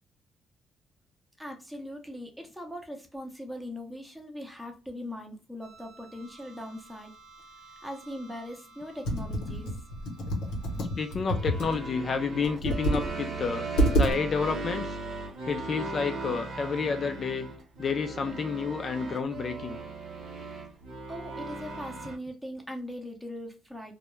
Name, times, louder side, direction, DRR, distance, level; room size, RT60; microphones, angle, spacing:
voice 1, 1.4-7.1 7.6-9.8 21.1-23.9, left 1 dB, ahead, 0.6 m, -40 dB
sound 1, 5.6-22.2, right 3 dB, 65° right, 0.9 m, -40 dB
Computer keyboard, 9.1-11.8 12.4-13.1 13.4-13.5 13.8-14.1, right 1 dB, 90° left, 0.7 m, -27 dB
voice 2, 11.0-13.7 14.0-15.0 15.5-17.5 17.8-19.8, left 5 dB, 45° left, 0.3 m, -30 dB
2.2 x 2.0 x 3.0 m
cardioid pair, 90°, 0 cm